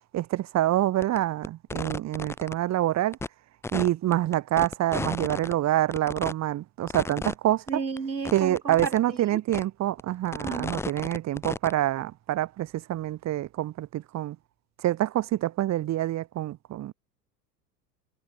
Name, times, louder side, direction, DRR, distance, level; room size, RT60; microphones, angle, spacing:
voice 1, 0.1-3.2 3.7-7.8 8.3-14.4 14.8-16.9, right 14 dB, 35° right, 2.6 m, -26 dB
sound 1, 1.0-1.2 1.4-2.5 3.1-3.3 3.6-5.5 5.9-6.3 6.9-7.3 7.7-7.8 8.0-8.1 8.2-9.0 9.5-9.6 10.0-11.7, left 3 dB, 5° left, 0.7 m, -33 dB
voice 2, 7.7-9.4 10.4-10.8, right 5 dB, 90° right, 1.8 m, -33 dB
figure-of-eight pair, 85°, 49 cm